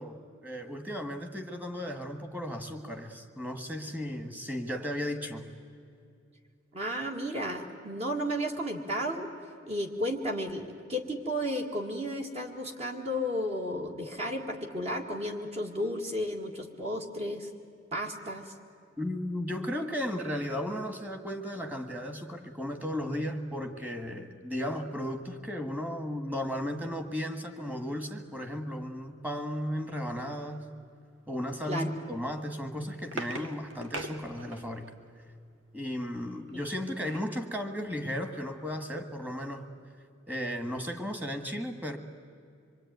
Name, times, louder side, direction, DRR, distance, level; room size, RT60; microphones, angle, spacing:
voice 1, 0.0-5.5 19.0-30.6 31.3-34.9 35.7-39.7 40.3-42.0, equal, 10° right, 6 dB, 1.7 m, -35 dB
voice 2, 6.7-9.3 9.7-17.5 17.9-18.5 31.7-31.9 33.4-33.5 36.5-36.6, equal, 30° right, 2 dB, 1.9 m, -33 dB
sound 1, 32.5-34.9 36.5-37.4 37.9-38.0 38.2-38.5, right 2 dB, 90° right, 1.9 m, -41 dB
26.0 x 23.0 x 9.4 m, 2.4 s
head